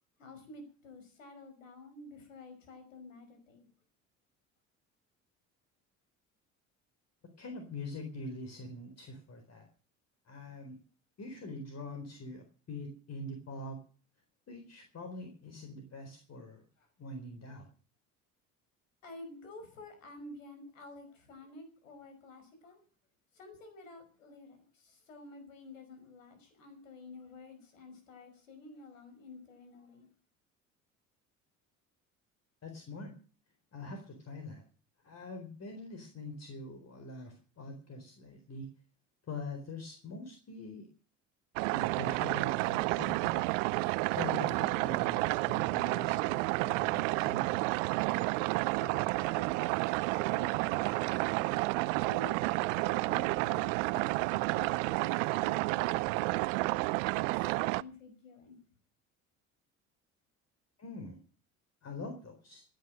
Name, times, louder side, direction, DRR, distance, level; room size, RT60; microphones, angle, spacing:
voice 1, 0.2-3.7 16.8-16.9 19.0-22.8 23.3-30.1 48.7-56.8 57.1-58.6, left 2 dB, 85° left, 5.4 m, -51 dB
voice 2, 7.4-9.7 10.3-10.8 11.2-13.8 14.5-16.6 17.0-17.7 32.6-33.1 33.7-34.6 35.0-38.7 39.3-40.9 41.7-43.5 44.1-47.7 60.8-61.2 61.8-62.6, left 2 dB, 40° left, 4.3 m, -44 dB
sound 1, 41.6-57.8, right 23 dB, 70° right, 0.7 m, -30 dB
16.5 x 10.5 x 6.3 m
hypercardioid pair, 65°, 38 cm